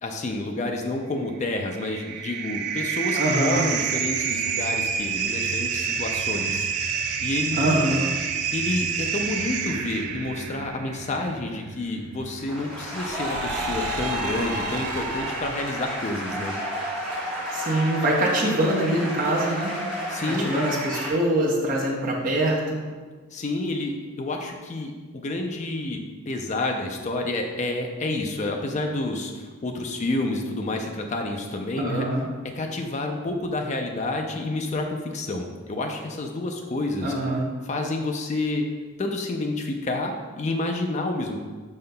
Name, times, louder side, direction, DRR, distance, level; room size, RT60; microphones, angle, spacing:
voice 1, 0.0-6.7 7.2-7.9 8.5-16.5 20.1-20.5 23.3-23.9 24.2-26.0 26.3-32.1 32.6-37.1 37.6-38.6 39.0-41.4, left 2 dB, 30° left, 3 dB, 0.4 m, -29 dB
sound 1, 1.4-15.9, right 6 dB, 80° right, 0.3 m, -29 dB
voice 2, 3.2-3.7 7.5-8.1 17.5-19.7 20.3-22.8 31.8-32.3 37.0-37.5, right 1 dB, 40° right, -3 dB, 0.6 m, -24 dB
sound 2, 12.2-21.1, equal, ahead, 1.3 m, -31 dB
5.5 x 3.8 x 2.2 m, 1.4 s
head